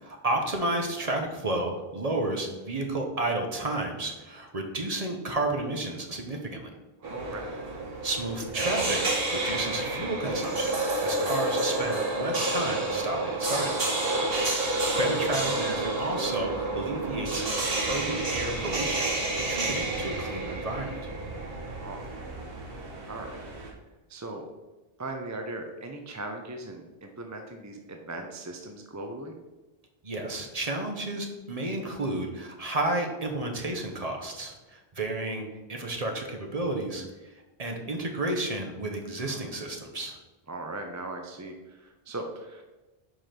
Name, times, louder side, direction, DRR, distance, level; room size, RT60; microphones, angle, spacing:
voice 1, 0.0-6.7 8.0-10.7 11.0-13.7 14.5-17.4 17.9-19.0 19.3-20.9 30.0-40.2, right 2 dB, 40° right, 3 dB, 1.0 m, -32 dB
voice 2, 7.0-7.5 21.8-22.0 23.1-23.7 24.1-24.4 25.0-29.3 39.2-39.7 40.5-42.6, right 2 dB, 20° right, 3 dB, 0.5 m, -39 dB
sound 1, 7.0-23.7, right 2 dB, 65° right, 1.4 m, -30 dB
5.2 x 4.8 x 5.8 m, 1.1 s
omnidirectional pair, 1.0 m